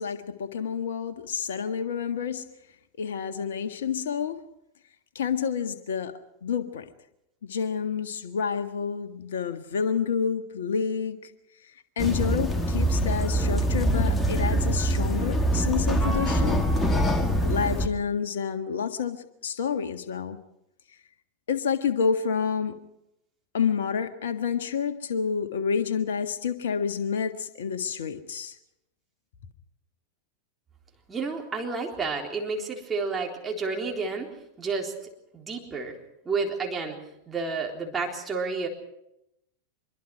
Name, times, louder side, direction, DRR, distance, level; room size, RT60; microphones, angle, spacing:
voice 1, 0.0-2.4 3.0-4.4 5.1-6.1 6.4-6.8 7.4-11.2 12.0-16.6 17.4-20.4 21.5-22.7 23.5-28.5, left 6 dB, 60° left, 9 dB, 1.6 m, -29 dB
sound 1, 12.0-17.9, right 1 dB, 15° left, 1.9 m, -24 dB
voice 2, 31.1-34.9 35.3-36.0 36.3-37.0 37.3-38.7, right 4 dB, 15° right, 0 dB, 3.8 m, -30 dB
25.0 x 22.5 x 4.8 m, 0.82 s
figure-of-eight pair, 90°, 0 cm